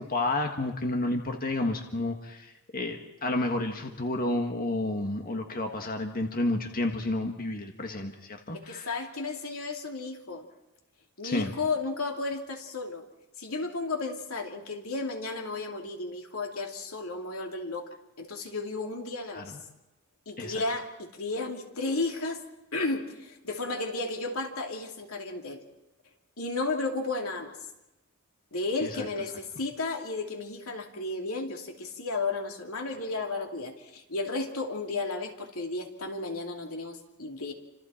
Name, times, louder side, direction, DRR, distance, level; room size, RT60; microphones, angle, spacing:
voice 1, 0.0-8.9 11.2-11.5 19.3-19.6 20.4-20.6 28.8-29.0, left 2 dB, 45° left, 4 dB, 1.7 m, -31 dB
voice 2, 8.5-10.5 11.2-13.0 13.4-17.9 18.2-19.6 20.3-22.4 22.7-25.6 26.4-27.6 28.5-37.5, left 3 dB, 85° left, 2 dB, 2.9 m, -33 dB
29.0 x 26.5 x 4.4 m, 0.96 s
head